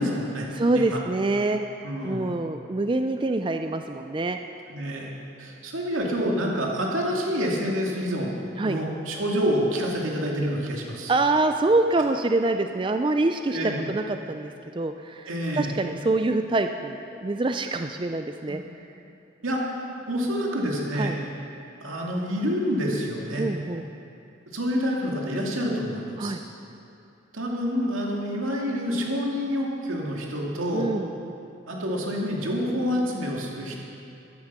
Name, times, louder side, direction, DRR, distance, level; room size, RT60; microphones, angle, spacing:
voice 1, 0.0-0.5 0.7-1.0 1.8-2.4 4.7-5.1 5.4-8.3 8.6-11.1 13.5-13.8 15.3-15.7 19.4-19.6 20.1-21.1 21.8-23.5 24.5-26.3 27.3-30.9 31.7-33.8, equal, 90° right, -2 dB, 2.5 m, -27 dB
voice 2, 0.5-1.8 2.0-4.4 8.6-8.8 11.1-18.6 20.9-21.1 23.4-23.8 26.2-26.4 30.7-31.1, right 2 dB, 25° right, 6 dB, 0.4 m, -25 dB
14.0 x 12.5 x 6.1 m, 2.7 s
head